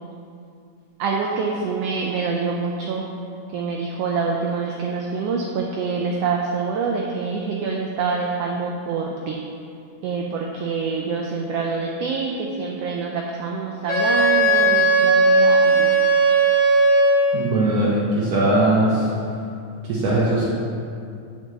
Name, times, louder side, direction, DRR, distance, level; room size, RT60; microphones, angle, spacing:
voice 1, 1.0-3.1 3.5-9.4 10.0-16.2, right 4 dB, 85° right, 0 dB, 1.4 m, -26 dB
Wind instrument woodwind instrument, 13.9-17.4, right 2 dB, 80° left, 2.9 m, -17 dB
voice 2, 17.3-19.1 19.9-20.4, right 2 dB, 70° right, -7 dB, 1.9 m, -19 dB
9.2 x 5.2 x 3.1 m, 2.4 s
omnidirectional pair, 3.3 m